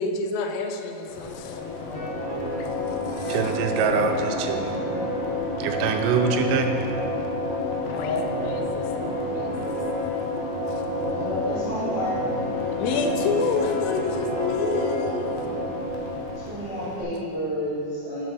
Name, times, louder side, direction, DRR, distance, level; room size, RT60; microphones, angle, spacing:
voice 1, 0.0-3.5 7.9-9.8 10.6-11.1 12.7-15.5, left 4 dB, 90° left, 4 dB, 2.8 m, -30 dB
sound 1, 1.1-17.0, left 1 dB, 75° left, 2.2 m, -29 dB
sound 2, 1.9-6.7 7.9-10.2 12.1-15.6, left 1 dB, 30° left, 1.7 m, -37 dB
voice 2, 3.3-4.7 5.6-6.7, right 6 dB, 90° right, 4 dB, 2.8 m, -24 dB
voice 3, 11.0-12.2 12.6-12.7 16.3-18.3, equal, 60° right, -11 dB, 0.3 m, -30 dB
6.8 x 5.9 x 6.3 m, 2.6 s
omnidirectional pair, 4.9 m